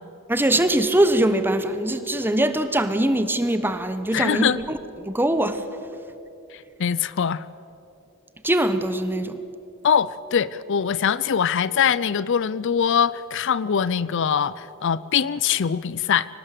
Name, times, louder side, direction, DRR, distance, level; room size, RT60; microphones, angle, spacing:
voice 1, 0.3-4.5 5.0-5.6 8.4-9.4, right 1 dB, 10° right, 10 dB, 1.0 m, -22 dB
voice 2, 4.1-4.6 6.8-7.4 9.8-16.3, left 7 dB, 55° left, 18 dB, 0.5 m, -22 dB
24.5 x 18.5 x 7.5 m, 2.9 s
head